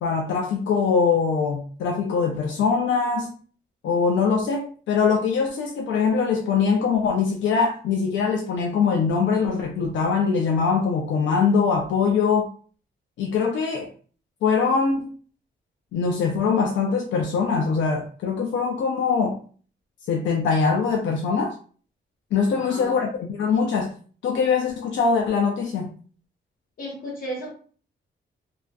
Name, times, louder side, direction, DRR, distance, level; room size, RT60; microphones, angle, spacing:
voice 1, 0.0-3.3 3.8-12.5 13.2-13.9 14.4-15.1 15.9-19.4 20.1-21.5 22.3-23.9 24.2-25.9, left 5 dB, 85° left, 1 dB, 0.4 m, -22 dB
voice 2, 22.5-23.0 26.8-27.5, right 1 dB, 50° left, -2 dB, 1.1 m, -34 dB
2.4 x 2.4 x 2.2 m, 0.42 s
wide cardioid pair, 155°, 19 cm